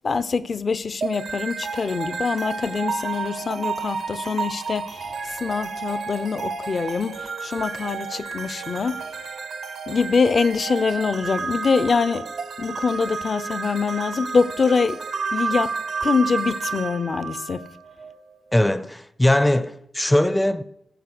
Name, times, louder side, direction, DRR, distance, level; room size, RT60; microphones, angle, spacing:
voice 1, 0.0-9.0 9.9-15.0 15.3-15.7 16.0-17.7, left 5 dB, 50° left, 0.6 m, -24 dB
sound 1, 1.0-18.2, right 5 dB, 70° right, 0.9 m, -31 dB
voice 2, 18.5-20.6, left 1 dB, 15° left, 0.5 m, -20 dB
14.0 x 5.1 x 6.1 m
cardioid pair, 55°, 0 cm